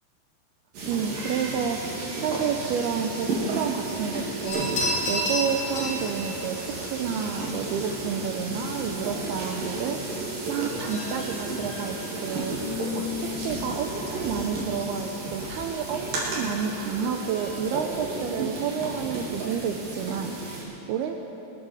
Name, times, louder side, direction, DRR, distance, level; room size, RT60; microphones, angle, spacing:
sound 1, 0.7-20.6, right 2 dB, 50° right, 4.3 m, -33 dB
voice 1, 0.9-4.7 5.1-21.1, right 7 dB, 85° right, 4 dB, 2.3 m, -30 dB
sound 2, 4.5-20.6, equal, 60° left, 6.1 m, -37 dB
sound 3, 10.8-14.4 14.9-15.1 15.6-15.9 16.7-17.0, left 9 dB, 80° left, 3.6 m, -39 dB
23.0 x 13.0 x 4.8 m, 3.0 s
omnidirectional pair, 5.3 m